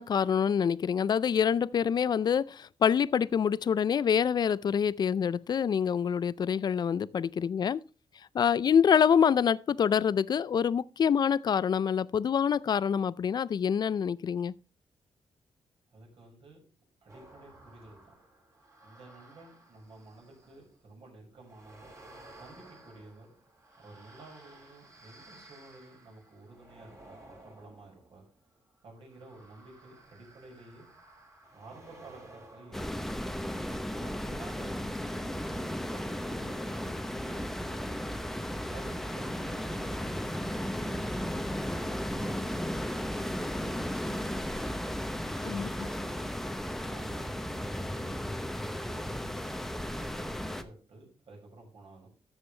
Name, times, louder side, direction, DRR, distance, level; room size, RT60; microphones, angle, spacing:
voice 1, 0.0-7.8 8.3-14.5 45.4-45.7, left 7 dB, 40° left, 0.4 m, -26 dB
voice 2, 15.9-16.6 17.0-18.1 18.8-21.9 22.4-23.3 23.8-27.2 27.4-28.2 28.8-30.9 31.5-33.0 33.9-37.8 38.7-43.7 45.4-46.3 46.9-49.3 49.9-52.1, right 2 dB, 55° right, 6.3 m, -52 dB
sound 1, 17.1-20.8 21.4-34.2 35.0-36.6 36.9-37.0, right 2 dB, 30° right, 3.3 m, -56 dB
sound 2, 32.7-50.6, equal, 5° left, 0.7 m, -35 dB
13.0 x 7.3 x 3.2 m
wide cardioid pair, 145°, 11 cm